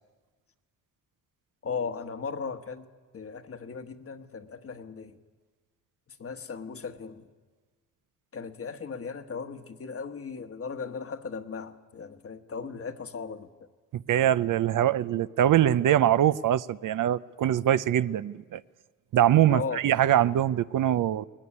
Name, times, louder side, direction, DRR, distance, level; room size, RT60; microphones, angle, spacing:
voice 1, 1.6-2.9 3.1-5.2 6.1-7.3 8.3-13.5 19.5-19.8, left 5 dB, 40° left, 8 dB, 1.2 m, -37 dB
voice 2, 13.9-18.6 19.1-21.2, right 11 dB, 65° right, 15 dB, 0.6 m, -23 dB
20.0 x 16.5 x 9.9 m, 1.4 s
cardioid pair, 90°, 35 cm